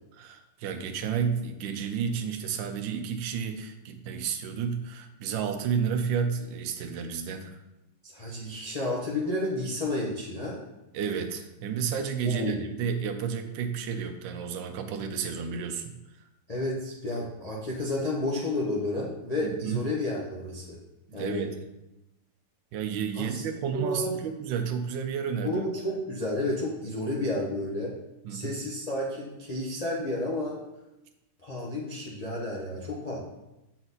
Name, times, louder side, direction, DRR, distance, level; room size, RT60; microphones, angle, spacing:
voice 1, 0.2-7.6 10.9-16.0 19.4-19.8 21.1-21.5 22.7-25.5 28.2-28.6, right 7 dB, 70° right, 7 dB, 1.3 m, -31 dB
voice 2, 8.0-10.6 12.2-12.7 16.5-20.8 21.1-21.4 23.2-23.4 23.7-24.1 25.4-27.9 28.3-30.6 31.4-33.2, left 1 dB, 30° left, -4 dB, 0.7 m, -31 dB
7.9 x 4.4 x 4.1 m, 0.95 s
omnidirectional pair, 2.2 m